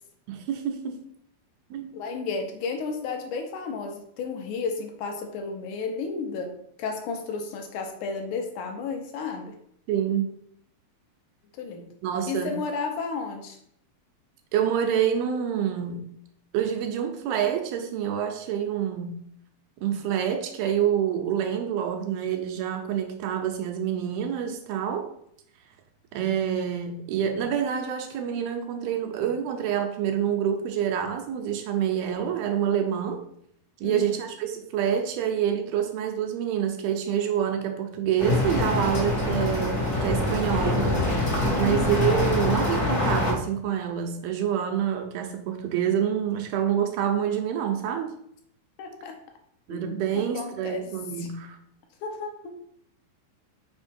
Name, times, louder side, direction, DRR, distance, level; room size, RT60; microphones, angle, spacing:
voice 1, 0.3-1.0 1.7-1.9 9.9-10.3 12.0-12.6 14.5-16.0 16.5-19.2 19.8-25.1 26.1-33.2 33.8-48.1 49.7-51.6, right 9 dB, 85° right, 4 dB, 2.8 m, -27 dB
voice 2, 1.9-6.5 6.8-9.5 11.6-11.9 12.3-13.6 33.8-34.2 41.4-41.9 48.8-49.2 49.7-50.8 51.2-51.3 52.0-52.5, left 4 dB, 70° left, 4 dB, 2.0 m, -33 dB
sound 1, 38.2-43.3, left 2 dB, 45° left, 0.9 m, -24 dB
6.2 x 4.8 x 4.4 m, 0.69 s
omnidirectional pair, 4.3 m